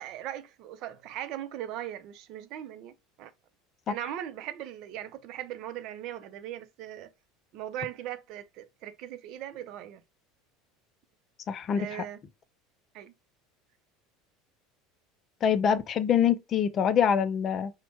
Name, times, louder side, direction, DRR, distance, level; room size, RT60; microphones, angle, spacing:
voice 1, 0.0-3.3 3.9-7.1 7.5-10.0 11.7-12.2 12.9-13.1, right 11 dB, 60° right, 0.5 m, -39 dB
voice 2, 11.5-11.9 15.4-17.7, left 8 dB, 35° left, 0.4 m, -24 dB
4.3 x 2.1 x 2.9 m
supercardioid pair, 120°, 0 cm